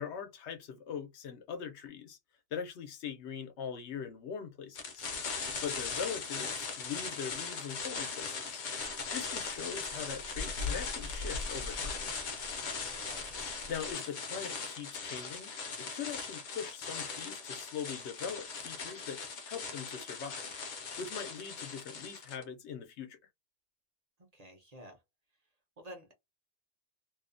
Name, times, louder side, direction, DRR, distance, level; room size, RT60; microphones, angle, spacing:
voice 1, 0.0-2.2 2.5-5.1 5.6-12.0 13.7-15.5 15.8-20.5 21.0-23.2, left 7 dB, 80° left, 0.9 m, -42 dB
sound 1, 4.7-22.4, left 5 dB, 55° left, 0.6 m, -39 dB
sound 2, 8.8-13.9, left 3 dB, 90° right, 0.9 m, -43 dB
voice 2, 12.9-13.3 24.3-25.0 25.8-26.1, equal, 45° right, 0.7 m, -50 dB
2.6 x 2.1 x 2.4 m
omnidirectional pair, 1.1 m